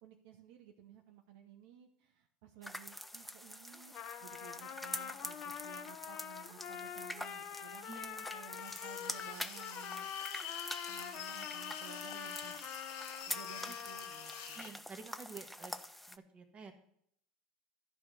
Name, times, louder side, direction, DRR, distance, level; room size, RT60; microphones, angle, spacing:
voice 1, 0.0-3.9 4.2-7.9 8.3-10.1 10.9-12.7 13.3-14.9, right 9 dB, 65° right, 4 dB, 0.9 m, -55 dB
sound 1, 2.6-16.2, left 1 dB, 5° left, 0.5 m, -46 dB
Trumpet, 3.7-14.6, left 9 dB, 50° left, 0.8 m, -46 dB
voice 2, 7.8-8.2 13.6-13.7 14.5-15.7 16.1-16.8, right 4 dB, 35° right, 6 dB, 1.6 m, -50 dB
sound 2, 8.6-14.7, left 8 dB, 70° left, 1.5 m, -47 dB
11.0 x 4.9 x 5.6 m, 0.69 s
hypercardioid pair, 85°, 3 cm